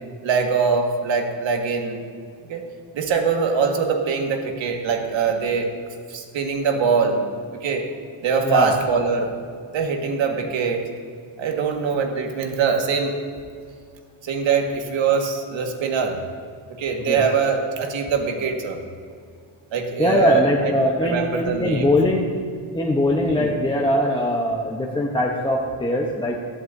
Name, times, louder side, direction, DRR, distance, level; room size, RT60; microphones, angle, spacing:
voice 1, 0.2-2.0 2.5-2.6 2.9-5.7 6.1-7.2 7.6-7.8 8.2-9.4 9.7-10.8 11.4-13.2 14.2-16.2 16.8-18.8 19.7-20.7 21.0-21.9 23.4-23.5, right 5 dB, 65° right, 3 dB, 1.7 m, -23 dB
voice 2, 20.0-22.3 22.7-26.5, left 1 dB, 10° left, -2 dB, 0.8 m, -21 dB
16.5 x 12.5 x 2.7 m, 2.2 s
cardioid pair, 140°, 49 cm